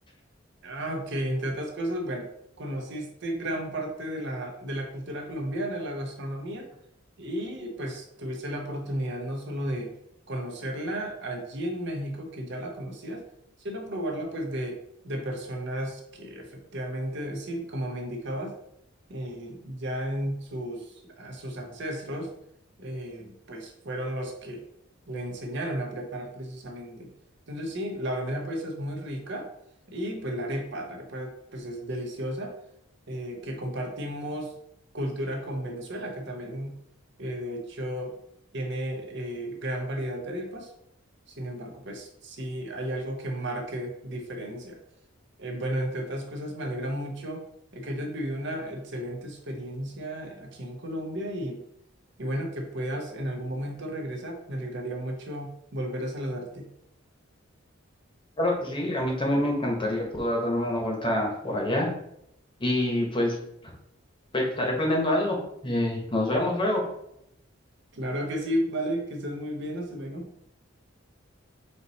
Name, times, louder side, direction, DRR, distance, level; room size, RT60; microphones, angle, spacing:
voice 1, 0.6-2.3 2.6-6.7 7.2-9.9 10.3-13.2 13.6-14.8 15.0-18.6 19.1-22.3 22.8-24.6 25.1-27.1 27.5-29.5 29.9-32.5 33.1-34.5 34.9-36.8 37.2-38.2 38.5-40.7 41.3-44.8 45.4-47.4 47.7-51.6 52.2-56.7 67.9-70.3, equal, 60° right, 3 dB, 0.8 m, -33 dB
voice 2, 58.4-61.9 62.6-63.4 64.3-65.4 65.6-66.8, left 1 dB, 25° left, 0 dB, 1.0 m, -26 dB
4.3 x 2.8 x 4.0 m, 0.76 s
head